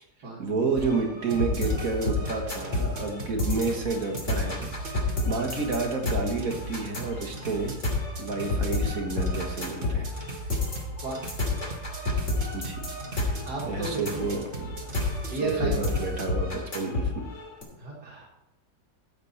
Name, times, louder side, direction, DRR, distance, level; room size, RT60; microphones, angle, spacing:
voice 1, 0.4-10.2 12.5-12.8 13.2-13.4 13.7-14.7 15.3-17.2, right 3 dB, 55° right, 2 dB, 2.0 m, -30 dB
sound 1, 0.8-17.6, left 2 dB, 45° left, 3.2 m, -30 dB
sound 2, 1.3-16.3, right 2 dB, 35° right, 1.4 m, -38 dB
voice 2, 13.4-14.3 15.1-15.8 17.8-18.3, right 3 dB, 75° right, -3 dB, 2.6 m, -33 dB
13.0 x 8.0 x 4.3 m, 0.91 s
omnidirectional pair, 1.7 m